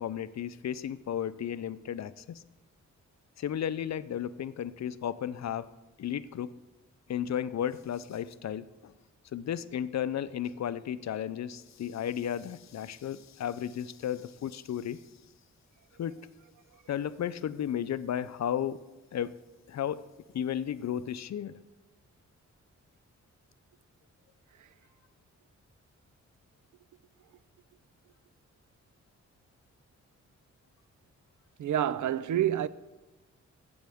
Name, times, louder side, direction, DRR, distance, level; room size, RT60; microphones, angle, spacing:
voice 1, 0.0-2.4 3.4-5.7 6.0-6.5 7.1-8.9 9.3-15.0 16.0-16.2 16.9-18.8 19.1-19.3 19.7-20.0 20.3-21.6, left 9 dB, 65° left, 0.5 m, -34 dB
voice 2, 31.6-32.7, right 11 dB, 80° right, 0.5 m, -27 dB
15.5 x 7.9 x 3.5 m
cardioid pair, 85°, 30 cm